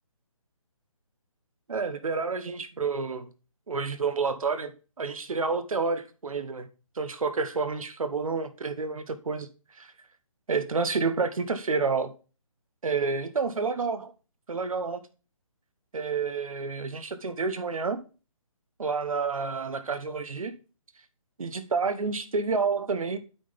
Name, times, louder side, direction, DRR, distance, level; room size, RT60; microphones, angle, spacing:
voice 1, 1.7-3.3 3.7-6.7 7.0-9.9 10.5-12.1 12.8-14.1 14.5-15.0 15.9-18.0 18.8-20.5 21.4-23.2, right 4 dB, 80° right, 1.1 m, -29 dB
9.2 x 3.9 x 5.1 m
hypercardioid pair, 170°, 18 cm